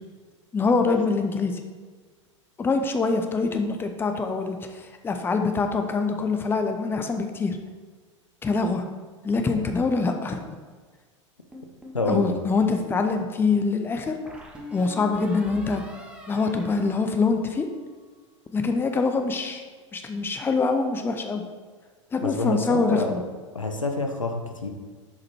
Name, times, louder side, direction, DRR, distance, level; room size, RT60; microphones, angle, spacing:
voice 1, 0.5-1.6 2.6-7.6 8.4-8.8 9.2-10.6 12.1-14.2 14.7-15.8 16.3-17.7 18.5-19.6 19.9-21.4 22.1-23.2, left 4 dB, 15° left, 6 dB, 0.6 m, -24 dB
sound 1, 11.5-12.4 14.2-17.9, equal, 5° right, 1.2 m, -43 dB
voice 2, 11.9-12.4 22.2-23.1 23.5-24.7, left 2 dB, 85° left, 4 dB, 0.8 m, -27 dB
7.3 x 5.1 x 4.4 m, 1.5 s
figure-of-eight pair, 85°, 16 cm